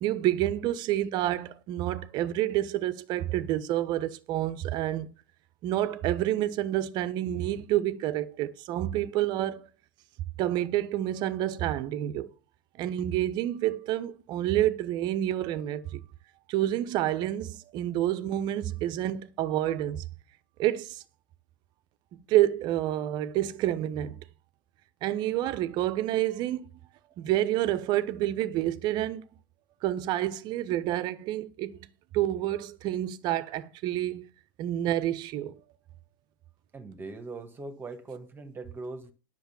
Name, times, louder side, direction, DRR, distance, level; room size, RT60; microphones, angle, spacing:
voice 1, 0.0-5.1 5.6-9.7 10.4-12.3 12.8-16.0 16.5-20.0 20.6-21.0 22.1-24.2 25.0-26.7 27.2-29.2 29.8-31.9 32.1-34.3 34.6-35.6, right 13 dB, 40° right, 0.9 m, -28 dB
voice 2, 36.7-39.1, right 3 dB, 20° right, 1.6 m, -41 dB
10.5 x 6.3 x 7.1 m
hypercardioid pair, 95°, 11 cm